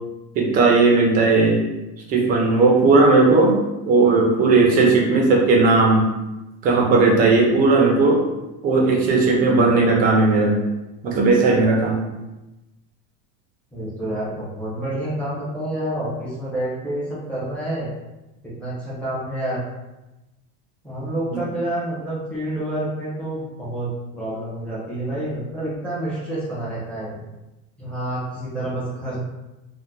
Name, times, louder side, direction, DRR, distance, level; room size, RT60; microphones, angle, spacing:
voice 1, 0.3-1.6 2.1-3.6 3.9-6.1 6.6-8.2 8.6-10.5 11.0-12.0 21.3-21.4, right 3 dB, 25° right, -1 dB, 0.5 m, -16 dB
voice 2, 13.7-17.9 18.6-19.6 20.8-27.2 27.8-29.2, right 1 dB, 5° left, -9 dB, 0.8 m, -28 dB
2.7 x 2.1 x 3.6 m, 1.0 s
cardioid pair, 170°, 31 cm